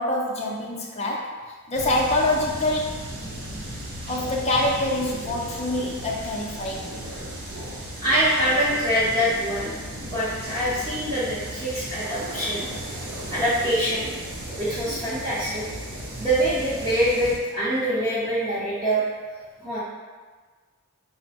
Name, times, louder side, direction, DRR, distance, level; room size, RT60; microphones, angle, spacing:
voice 1, 0.0-1.4 1.7-3.0 4.1-6.9, left 1 dB, 30° left, -2 dB, 0.6 m, -25 dB
sound 1, 1.7-17.4, right 1 dB, 70° right, 0.9 m, -36 dB
voice 2, 8.0-9.7 10.0-12.6 13.3-14.1 14.6-15.6 16.2-19.8, equal, 20° right, -12 dB, 0.8 m, -24 dB
4.3 x 2.1 x 4.1 m, 1.4 s
head